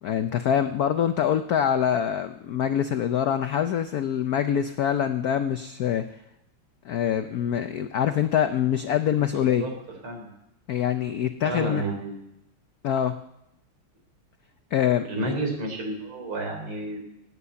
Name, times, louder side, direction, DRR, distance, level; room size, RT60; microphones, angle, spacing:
voice 1, 0.0-6.0 6.8-9.7 10.7-11.8 12.8-13.2 14.7-15.1, left 9 dB, 70° left, 9 dB, 0.9 m, -24 dB
voice 2, 9.3-9.7 10.0-10.3 11.4-12.3 15.1-17.0, right 2 dB, 70° right, 2 dB, 4.5 m, -31 dB
18.5 x 8.6 x 8.3 m, 0.83 s
omnidirectional pair, 2.4 m